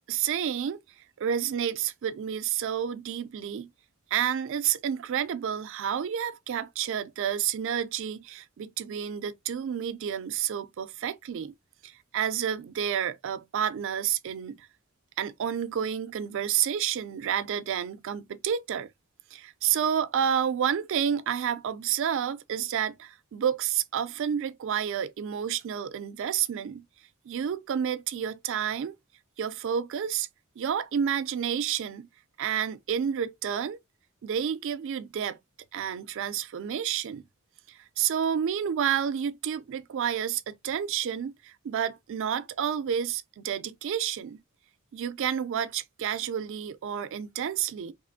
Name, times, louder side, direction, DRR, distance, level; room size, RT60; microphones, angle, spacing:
voice 1, 0.1-0.8 1.2-3.7 4.1-11.5 11.8-14.7 15.2-18.9 19.3-26.8 27.3-28.9 29.4-30.3 30.6-32.1 32.4-33.8 34.2-35.4 35.7-37.2 37.7-44.4 44.9-47.9, right 8 dB, 65° right, 0.3 m, -30 dB
2.6 x 2.4 x 2.5 m
head